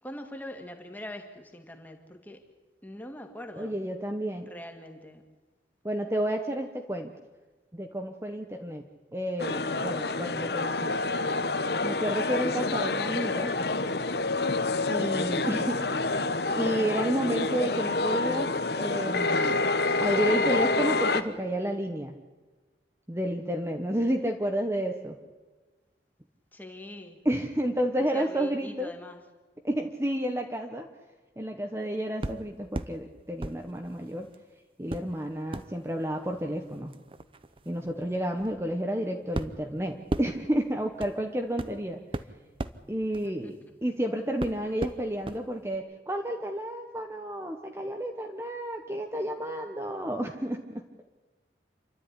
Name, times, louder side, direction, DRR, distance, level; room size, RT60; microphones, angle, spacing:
voice 1, 0.0-2.4 2.8-3.7 4.5-5.3 26.5-27.2 28.0-29.2 43.2-43.5, left 1 dB, 10° left, 4 dB, 2.2 m, -43 dB
voice 2, 3.6-4.5 5.8-7.1 7.7-8.9 9.1-10.9 11.8-13.5 14.9-16.0 16.6-19.6 20.0-22.1 23.1-25.2 27.2-28.9 29.6-30.9 31.4-34.3 34.8-36.9 37.7-42.0 42.9-43.5 43.8-51.1, right 1 dB, 15° right, 3 dB, 1.1 m, -31 dB
sound 1, 9.4-21.2, left 3 dB, 65° left, 1.1 m, -28 dB
sound 2, 32.2-33.0 33.4-34.4 34.9-44.0 44.4-45.4 45.7-45.8, right 1 dB, 30° right, 0.8 m, -38 dB
28.0 x 12.5 x 9.9 m, 1.3 s
head